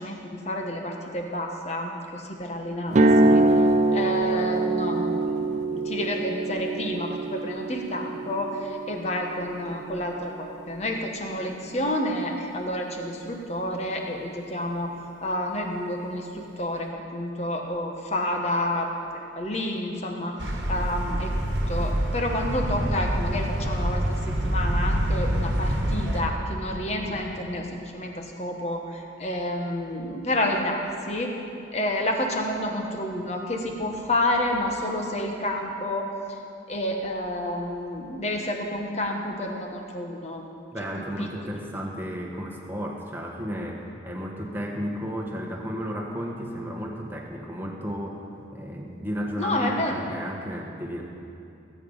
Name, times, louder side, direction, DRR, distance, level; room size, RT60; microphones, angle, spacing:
voice 1, 0.0-3.5 3.9-21.3 21.7-31.3 31.7-36.1 36.7-40.4 41.0-41.3 49.4-50.0, left 1 dB, 35° left, 2 dB, 1.3 m, -29 dB
sound 1, 2.9-10.9, right 2 dB, 40° right, 0.6 m, -24 dB
sound 2, 20.4-26.2, equal, 65° right, 1.4 m, -26 dB
voice 2, 40.7-48.3 48.5-51.0, equal, 10° right, -1 dB, 1.3 m, -33 dB
19.0 x 8.5 x 5.5 m, 2.6 s
head